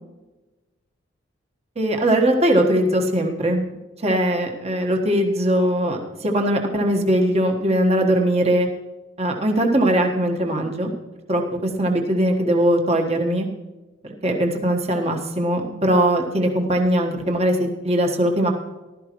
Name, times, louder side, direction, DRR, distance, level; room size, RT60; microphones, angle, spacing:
voice 1, 1.7-3.7 4.0-8.7 9.2-10.9 11.3-13.5 14.2-18.5, right 1 dB, 35° right, 2 dB, 1.4 m, -20 dB
15.5 x 12.5 x 3.1 m, 1.1 s
head